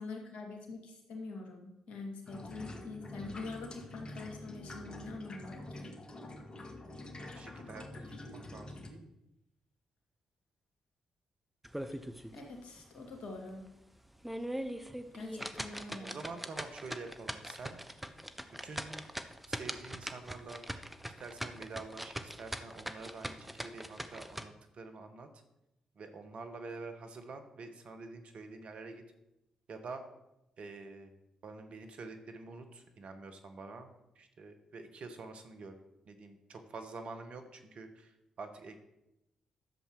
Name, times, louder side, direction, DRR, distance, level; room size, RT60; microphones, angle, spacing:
voice 1, 0.0-5.9 12.3-13.6 15.1-16.1, left 3 dB, 70° left, 2 dB, 2.5 m, -45 dB
sound 1, 2.3-8.9, left 1 dB, 40° left, 1.9 m, -47 dB
voice 2, 7.2-9.1 16.0-17.8 18.6-19.0 19.5-20.6 21.0-25.3 26.0-29.0 29.7-30.0 30.6-31.1 31.4-35.7 36.1-38.1 38.4-38.8, right 3 dB, 60° right, 7 dB, 1.5 m, -47 dB
sound 2, 11.6-12.4 12.8-12.9 13.4-13.5 14.1-24.5, equal, 5° right, 1.1 m, -41 dB
11.0 x 7.2 x 4.9 m, 0.88 s
hypercardioid pair, 40°, 2 cm